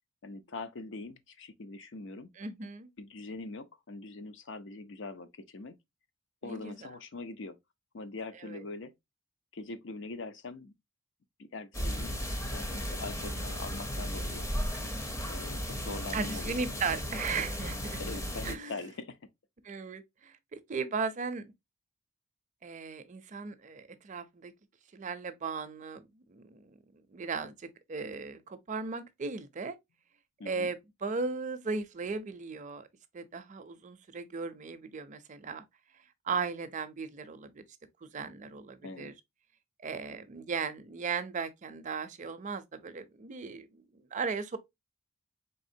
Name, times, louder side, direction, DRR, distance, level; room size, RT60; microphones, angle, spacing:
voice 1, 0.2-2.3 3.0-5.7 6.4-7.6 7.9-8.9 9.5-10.7 11.4-14.5 15.3-16.8 18.0-19.2 30.4-30.7 38.8-39.1, left 3 dB, 60° left, 0.6 m, -43 dB
voice 2, 2.4-2.9 6.4-6.7 8.4-8.6 16.1-18.0 18.4-18.8 19.6-21.5 22.6-24.5 24.9-26.7 27.1-29.8 30.5-32.9 33.1-35.6 36.2-37.6 38.0-39.1 39.8-44.6, right 4 dB, 35° right, 0.5 m, -37 dB
sound 1, 11.7-18.5, equal, 15° left, 0.6 m, -35 dB
4.2 x 3.3 x 2.7 m
head